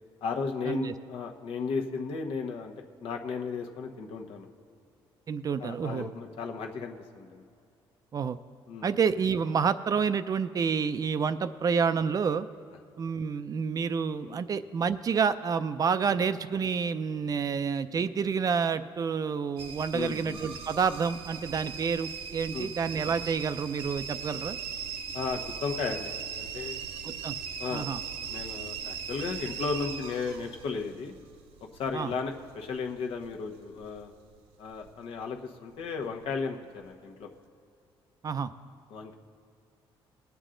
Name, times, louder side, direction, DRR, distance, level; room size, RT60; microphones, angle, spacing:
voice 1, 0.2-2.7 3.0-4.5 5.6-7.4 8.7-8.9 14.2-14.5 16.1-16.2 19.9-20.4 22.5-22.7 25.1-26.1 26.4-26.8 27.6-27.9 28.3-31.1 31.7-34.1 34.6-37.3 38.9-39.2, left 5 dB, 75° left, 3 dB, 1.1 m, -35 dB
voice 2, 5.3-6.1 8.1-8.4 8.8-12.5 13.0-24.6 27.0-27.4 27.7-28.0 31.9-32.1 38.2-38.5, right 6 dB, 40° right, 12 dB, 0.4 m, -29 dB
sound 1, 19.6-34.5 34.7-35.3 35.9-36.3 36.8-36.9, right 7 dB, 85° right, 0.8 m, -39 dB
19.5 x 8.1 x 3.8 m, 2.5 s
cardioid pair, 100°, 10 cm